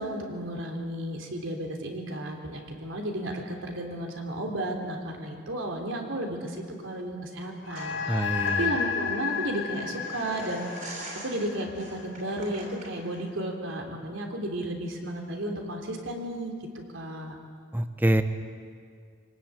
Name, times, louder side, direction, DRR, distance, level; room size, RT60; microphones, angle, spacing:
voice 1, 0.0-6.6 6.8-8.2 8.6-16.5 16.9-17.3, right 1 dB, 75° right, 2 dB, 3.4 m, -33 dB
sound 1, 7.6-12.3, left 6 dB, 60° left, 2.2 m, -32 dB
sound 2, 7.7-13.2, right 1 dB, 40° right, 6.5 m, -44 dB
voice 2, 8.1-8.7 17.7-18.2, right 1 dB, 10° right, 9 dB, 0.9 m, -25 dB
24.5 x 19.0 x 9.0 m, 2.1 s
head